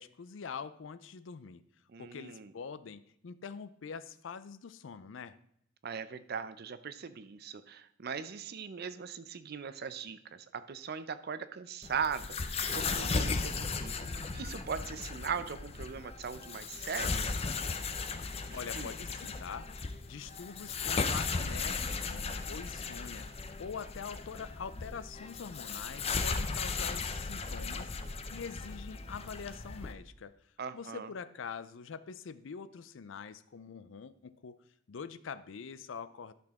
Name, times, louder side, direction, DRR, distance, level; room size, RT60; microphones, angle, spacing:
voice 1, 0.0-1.6 2.0-5.4 18.5-19.7 20.0-23.3 23.6-30.4 30.7-34.6 34.9-36.3, left 6 dB, 80° left, 14 dB, 0.5 m, -44 dB
voice 2, 1.9-2.5 5.8-17.3 18.5-18.9 30.6-31.1, right 6 dB, 55° right, 12 dB, 0.5 m, -40 dB
sound 1, 11.8-29.9, left 4 dB, 30° left, 0.6 m, -36 dB
11.5 x 6.0 x 3.6 m, 0.72 s
head